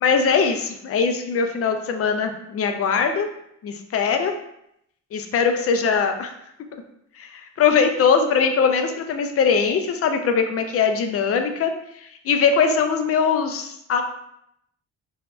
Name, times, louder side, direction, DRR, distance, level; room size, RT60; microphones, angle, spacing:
voice 1, 0.0-3.3 3.6-4.3 5.1-6.3 7.2-11.7 12.0-14.0, left 6 dB, 50° left, 6 dB, 0.4 m, -21 dB
2.7 x 2.2 x 3.1 m, 0.76 s
cardioid pair, 90°, 30 cm